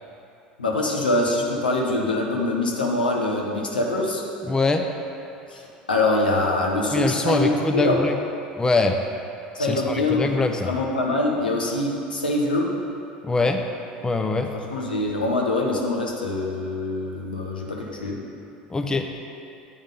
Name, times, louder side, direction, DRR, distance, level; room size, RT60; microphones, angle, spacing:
voice 1, 0.6-4.2 5.5-5.6 5.9-8.0 9.5-12.7 14.5-18.2, left 2 dB, 85° left, -2 dB, 0.9 m, -24 dB
voice 2, 4.5-4.8 6.9-8.1 8.6-9.0 9.6-10.7 13.2-13.6 14.0-14.5 18.7-19.1, left 3 dB, 15° left, 4 dB, 0.5 m, -23 dB
8.5 x 3.6 x 5.2 m, 2.7 s
figure-of-eight pair, 75°, 5 cm